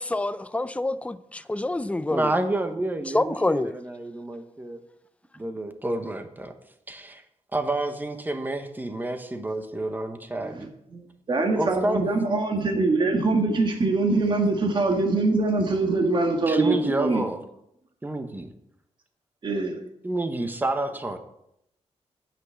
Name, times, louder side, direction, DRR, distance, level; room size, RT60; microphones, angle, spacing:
voice 1, 0.0-2.3 3.1-3.7, left 2 dB, 10° left, 0.5 m, -27 dB
voice 2, 2.1-4.8 5.4-6.5 6.9-7.2 7.5-10.7 11.6-12.0 16.5-17.4 18.0-18.5 20.0-21.2, right 2 dB, 15° right, 1.2 m, -29 dB
voice 3, 10.9-17.2 19.4-19.8, right 3 dB, 40° right, 1.8 m, -23 dB
9.2 x 6.1 x 8.2 m
wide cardioid pair, 125°, 12 cm